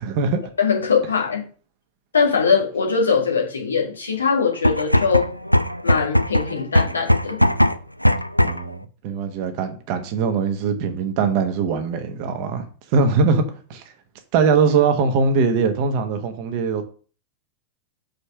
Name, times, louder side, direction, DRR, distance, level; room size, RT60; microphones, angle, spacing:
voice 1, 0.0-0.4 8.4-13.8 14.3-16.8, right 5 dB, 45° right, 1.2 m, -21 dB
voice 2, 0.6-1.5 2.1-5.3 5.8-7.4, left 5 dB, 75° left, 1.6 m, -21 dB
sound 1, 4.5-8.7, equal, 90° left, 0.3 m, -19 dB
5.2 x 4.2 x 6.0 m
figure-of-eight pair, 90°, 0 cm